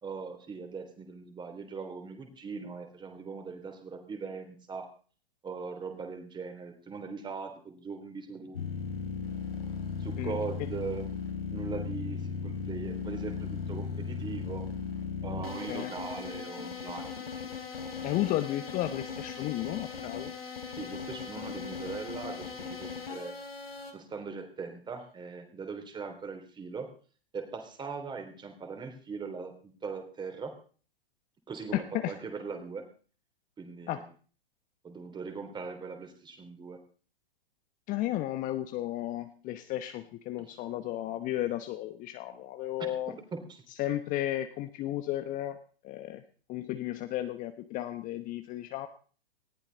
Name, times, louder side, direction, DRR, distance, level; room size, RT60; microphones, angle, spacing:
voice 1, 0.0-4.9 5.4-8.6 10.0-11.0 11.5-14.7 15.2-17.2 20.8-23.3 23.9-26.9 27.3-30.5 31.5-32.8 33.6-34.1 34.8-36.8 40.5-40.6 42.8-42.9 43.3-43.6, right 5 dB, 15° right, 6 dB, 3.2 m, -40 dB
sound 1, 8.5-23.9, left 5 dB, 75° left, 3.3 m, -37 dB
voice 2, 18.0-20.3 31.7-32.1 33.9-34.0 37.9-43.1 43.8-45.6 45.8-46.2 46.5-48.9, left 14 dB, 25° left, 9 dB, 1.0 m, -33 dB
19.5 x 14.5 x 4.0 m, 0.42 s
figure-of-eight pair, 110°, 29 cm